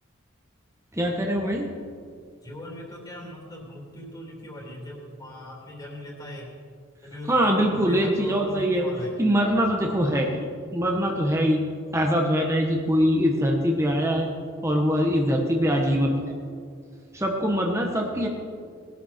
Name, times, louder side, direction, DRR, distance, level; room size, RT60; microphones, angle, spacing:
voice 1, 0.9-1.7 7.3-8.9 9.2-11.6 11.9-14.3 14.6-16.3 17.1-18.3, equal, 15° right, 0 dB, 1.2 m, -23 dB
voice 2, 2.4-6.5 7.0-9.2, left 1 dB, 20° left, -2 dB, 3.0 m, -39 dB
20.0 x 12.5 x 4.4 m, 2.1 s
head